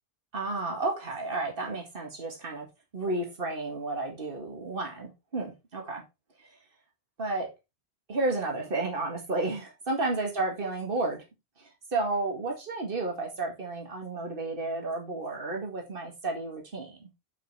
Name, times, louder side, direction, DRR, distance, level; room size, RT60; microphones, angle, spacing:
voice 1, 0.3-2.7 2.9-6.0 7.2-7.5 8.1-11.2 11.6-17.1, right 2 dB, 55° right, 2.3 m, -32 dB
7.9 x 6.2 x 3.3 m
omnidirectional pair, 1.1 m